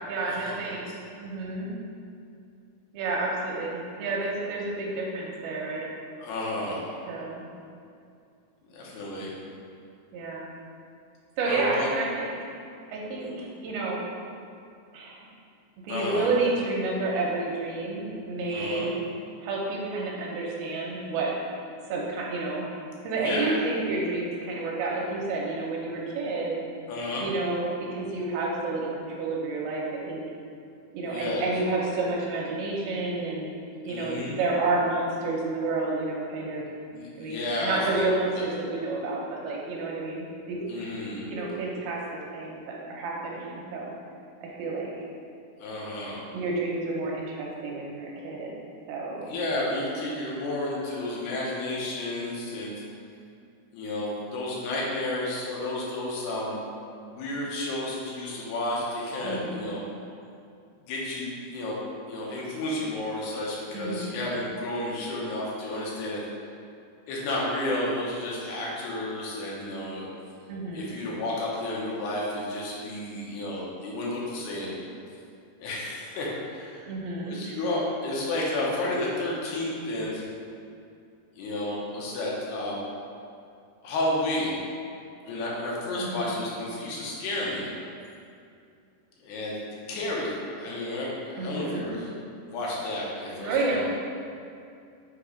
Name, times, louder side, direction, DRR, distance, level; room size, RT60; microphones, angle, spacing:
voice 1, 0.1-0.9 1.2-1.7 2.9-5.9 7.1-7.5 10.1-10.5 11.4-12.4 12.9-13.3 13.6-14.0 14.9-15.2 15.8-19.0 19.4-21.3 21.9-22.6 23.0-26.6 27.2-30.2 30.9-33.5 33.9-36.7 37.2-40.9 41.3-43.9 44.4-44.9 46.3-48.6 48.9-49.3 59.2-59.7 63.7-64.1 70.5-71.0 76.8-77.4 86.0-86.3 91.3-91.9 93.4-93.8, right 3 dB, 80° right, -3 dB, 2.5 m, -30 dB
voice 2, 6.2-7.1 8.7-9.3 11.5-11.9 13.2-13.3 15.9-16.3 18.5-18.9 23.2-23.6 26.9-27.3 31.1-31.5 33.9-34.4 36.9-38.0 38.3-38.4 40.7-41.3 45.6-46.2 49.3-52.8 53.7-56.6 57.1-59.8 60.9-61.8 62.1-66.2 67.1-70.1 70.7-74.7 75.6-76.9 77.2-80.3 81.4-82.8 83.8-84.6 85.2-87.7 89.2-89.6 89.9-92.1 92.4-93.8, left 1 dB, 80° left, -5 dB, 3.0 m, -31 dB
6.8 x 2.9 x 4.9 m, 2.5 s
omnidirectional pair, 4.5 m